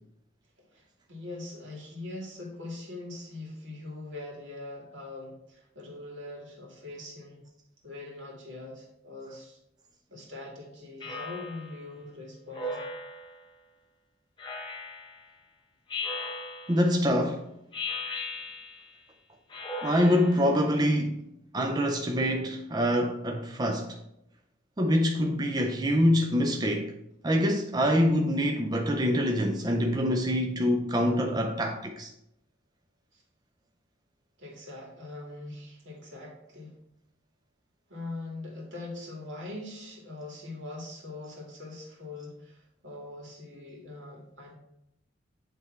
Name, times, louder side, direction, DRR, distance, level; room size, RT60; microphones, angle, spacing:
voice 1, 0.6-7.4 7.8-9.6 10.1-12.8 33.1-33.2 34.4-36.8 37.9-44.5, left 2 dB, 80° right, 2.2 m, -42 dB
Speech synthesizer, 11.0-11.8 12.5-13.4 14.4-15.2 15.9-16.9 17.7-18.9 19.5-20.5, left 2 dB, 25° left, 0.8 m, -37 dB
voice 2, 16.7-17.4 19.8-21.3 21.5-24.0 24.8-26.9 27.2-32.1, equal, 20° right, 0.4 m, -25 dB
8.4 x 3.4 x 4.4 m
head